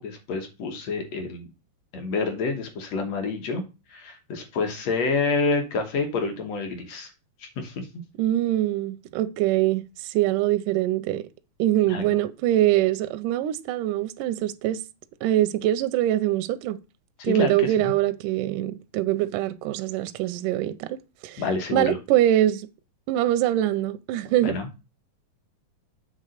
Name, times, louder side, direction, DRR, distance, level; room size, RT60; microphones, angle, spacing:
voice 1, 0.0-1.5 1.9-3.6 3.9-7.1 7.4-7.9 11.9-12.1 17.2-17.9 21.4-22.0 24.4-24.7, left 4 dB, 60° left, 1.9 m, -28 dB
voice 2, 8.2-11.3 11.6-14.8 15.2-16.8 17.2-21.4 21.7-22.7 23.1-24.5, right 13 dB, 80° right, 1.9 m, -23 dB
7.7 x 3.6 x 6.4 m
omnidirectional pair, 4.1 m